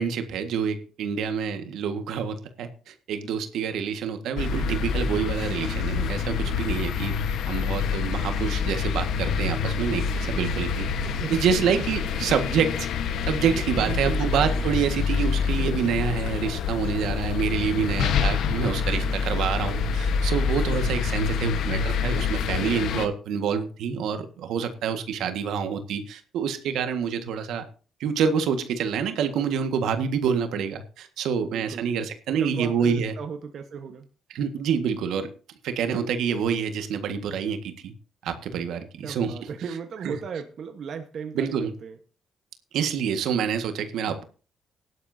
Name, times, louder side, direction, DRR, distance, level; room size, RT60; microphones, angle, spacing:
voice 1, 0.0-7.2 7.5-10.9 11.3-12.9 13.3-27.6 28.0-33.1 34.3-35.3 35.6-37.9 38.2-39.3 40.0-40.1 41.3-41.7 42.7-44.2, right 7 dB, 80° right, 7 dB, 1.7 m, -27 dB
sound 1, 4.4-23.1, left 6 dB, 75° left, 1.3 m, -27 dB
voice 2, 11.0-11.6 13.7-14.8 31.4-31.9 32.4-34.1 39.0-42.0, right 6 dB, 60° right, 6 dB, 1.3 m, -36 dB
17.0 x 11.5 x 2.8 m, 0.38 s
cardioid pair, 85°, 0 cm